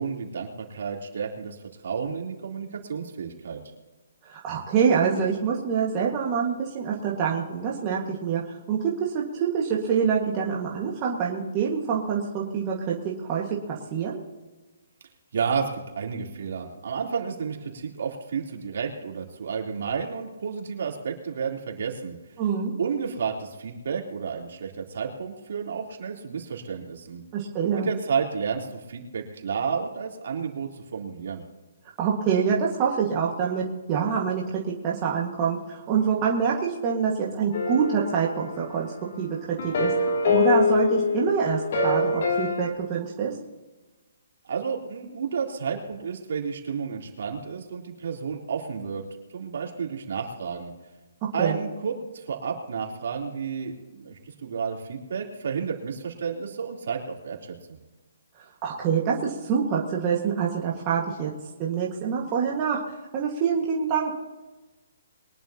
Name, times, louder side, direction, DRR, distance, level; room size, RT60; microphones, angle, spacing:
voice 1, 0.0-1.6 1.8-3.6 15.3-22.2 22.8-27.2 27.7-31.4 44.4-49.0 49.3-50.7 51.3-57.8, right 6 dB, 60° right, 0 dB, 3.5 m, -31 dB
voice 2, 4.3-8.4 8.7-14.2 22.4-22.7 27.3-27.9 32.0-39.9 40.3-43.4 51.4-51.6 58.6-61.3 61.6-62.8 63.1-64.2, right 6 dB, 25° right, -3 dB, 1.8 m, -26 dB
sound 1, 37.5-39.1 39.6-42.7, left 4 dB, 50° left, 2.7 m, -25 dB
23.0 x 11.0 x 2.9 m, 1.2 s
hypercardioid pair, 165°, 0 cm